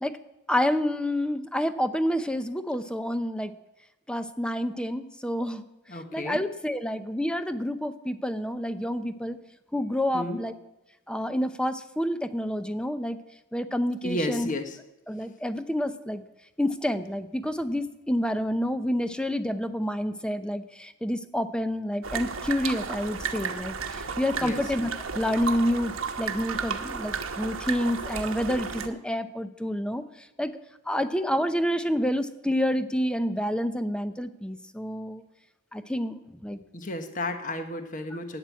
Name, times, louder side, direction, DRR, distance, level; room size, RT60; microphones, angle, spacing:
voice 1, 0.5-3.5 4.1-5.6 6.1-9.4 9.7-10.5 11.1-13.2 13.5-14.5 15.1-16.2 16.6-25.9 26.2-30.0 30.4-30.5 30.9-35.2 35.7-36.6, equal, 5° left, 11 dB, 0.6 m, -28 dB
voice 2, 5.9-6.4 10.1-10.4 14.0-14.8 24.4-24.6 36.7-38.4, left 1 dB, 40° left, 7 dB, 1.2 m, -32 dB
sound 1, 22.0-28.9, right 5 dB, 75° right, 1.2 m, -33 dB
12.0 x 9.1 x 8.3 m, 0.91 s
head